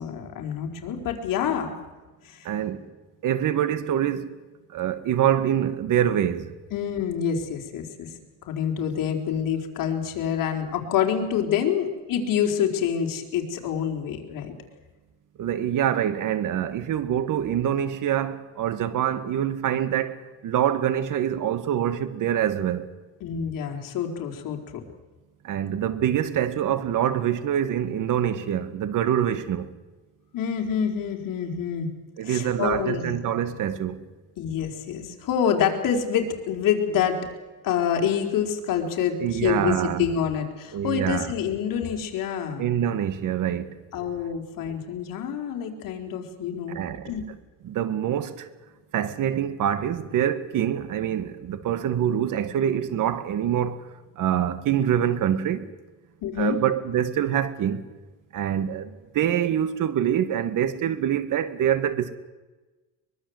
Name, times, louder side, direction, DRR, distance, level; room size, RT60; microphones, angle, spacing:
voice 1, 0.0-1.7 2.2-2.5 6.7-8.1 8.5-14.5 23.2-24.6 30.3-31.9 32.2-33.2 34.4-37.3 37.6-42.6 43.9-46.8 47.1-47.2 56.2-56.6, left 8 dB, 65° left, 4.2 m, -27 dB
voice 2, 2.4-2.9 3.2-4.3 4.7-6.5 15.4-22.9 25.4-29.7 32.2-34.0 39.2-40.1 40.7-41.3 42.6-43.8 46.7-47.1 47.6-48.5 48.9-53.8 54.2-55.7 56.4-57.8 58.3-62.1, right 10 dB, 60° right, 2.1 m, -25 dB
23.0 x 22.0 x 8.1 m
cardioid pair, 125°, 35 cm